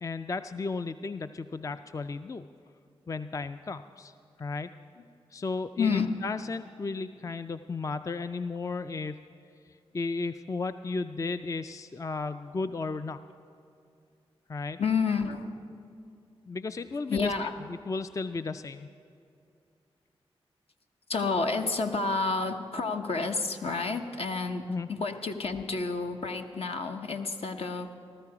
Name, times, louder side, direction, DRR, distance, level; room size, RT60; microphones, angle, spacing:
voice 1, 0.0-2.4 3.1-4.1 4.4-4.7 5.3-9.2 9.9-13.2 14.5-14.8 16.5-17.3 17.7-18.9 24.7-24.9, left 3 dB, 30° left, 11 dB, 0.4 m, -34 dB
voice 2, 5.8-6.1 14.8-15.6 16.9-17.5 21.1-24.6 24.9-27.9, left 4 dB, 65° left, 5 dB, 0.9 m, -30 dB
14.5 x 13.5 x 4.8 m, 2.5 s
cardioid pair, 45°, 11 cm